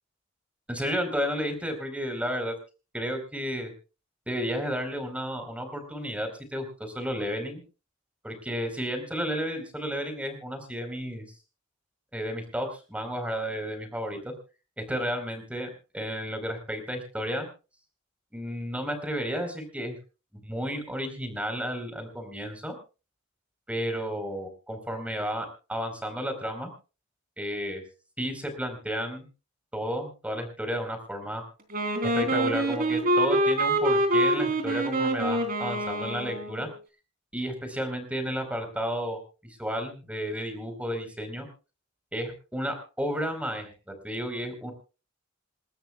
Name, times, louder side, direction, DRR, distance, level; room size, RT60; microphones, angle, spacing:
voice 1, 0.7-2.5 2.9-3.7 4.3-7.6 8.2-11.2 12.1-14.3 14.8-15.7 15.9-17.5 18.3-20.0 20.4-22.8 23.7-26.7 27.4-27.8 28.2-29.3 29.7-31.4 32.1-36.7 37.3-39.2 39.6-41.5 42.1-44.7, equal, 5° right, 6 dB, 4.4 m, -32 dB
Wind instrument woodwind instrument, 31.7-36.7, right 1 dB, 45° right, 3.6 m, -25 dB
28.0 x 13.0 x 2.4 m, 0.34 s
head